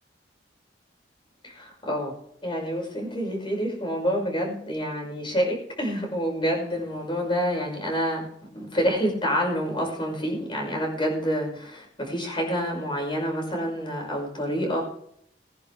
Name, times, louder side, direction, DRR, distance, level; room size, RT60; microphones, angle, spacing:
voice 1, 1.4-2.1 2.4-8.3 8.5-14.8, equal, 30° left, 0 dB, 5.9 m, -27 dB
21.0 x 10.5 x 3.4 m, 0.68 s
head